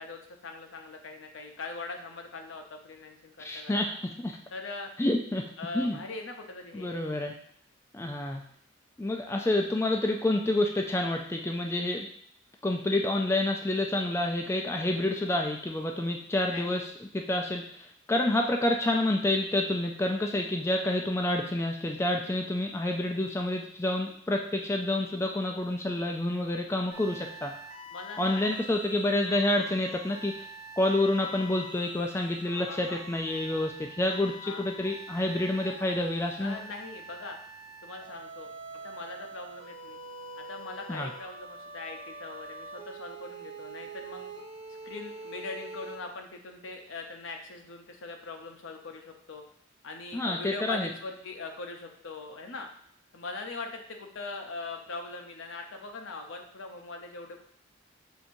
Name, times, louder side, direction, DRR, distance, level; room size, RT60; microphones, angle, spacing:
voice 1, 0.0-3.9 4.5-4.9 5.6-6.9 16.5-16.8 27.9-28.6 32.4-33.0 34.4-34.7 36.4-37.4 37.8-38.5 38.8-40.0 40.4-44.3 44.8-49.4 49.8-52.7 53.1-57.4, left 3 dB, 85° left, 3 dB, 0.7 m, -41 dB
voice 2, 3.4-4.3 5.0-5.4 5.7-6.0 6.7-7.3 7.9-8.4 9.0-12.1 12.6-27.5 28.2-30.5 30.8-36.6 40.9-41.1 50.1-50.9, left 1 dB, 15° left, 2 dB, 0.3 m, -28 dB
sound 1, 26.9-46.0, right 2 dB, 70° right, 1.2 m, -45 dB
7.0 x 2.7 x 2.6 m, 0.64 s
head